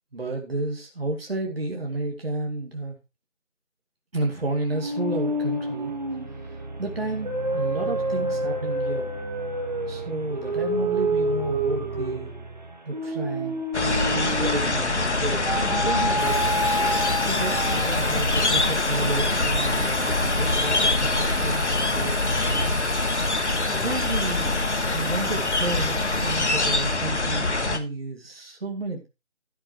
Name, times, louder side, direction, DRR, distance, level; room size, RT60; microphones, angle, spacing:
voice 1, 0.1-3.0 4.1-5.9 6.4-9.1 9.9-12.3 12.9-16.6 17.3-22.7 23.7-24.6 24.9-29.1, right 2 dB, 50° right, 1 dB, 2.3 m, -32 dB
sound 1, 4.7-14.9 15.5-18.2, right 1 dB, 35° right, 1.6 m, -28 dB
sound 2, 13.7-27.8, left 2 dB, 65° left, 1.6 m, -24 dB
Harmonica, 16.1-27.2, right 1 dB, 80° right, 2.1 m, -39 dB
13.0 x 6.1 x 4.6 m, 0.27 s
figure-of-eight pair, 175°, 38 cm